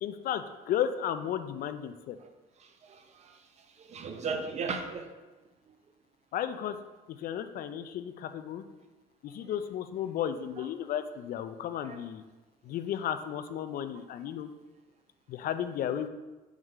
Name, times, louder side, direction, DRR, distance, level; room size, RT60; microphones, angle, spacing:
voice 1, 0.0-2.2 6.3-6.8 7.1-8.6 9.2-12.2 12.6-14.5 15.3-16.1, left 9 dB, 60° left, 10 dB, 0.4 m, -34 dB
voice 2, 2.6-3.4 3.7-5.1 9.4-9.5 10.6-10.7 11.8-12.0, right 4 dB, 40° right, 6 dB, 0.7 m, -37 dB
4.7 x 3.7 x 5.4 m, 1.2 s
cardioid pair, 110°, 17 cm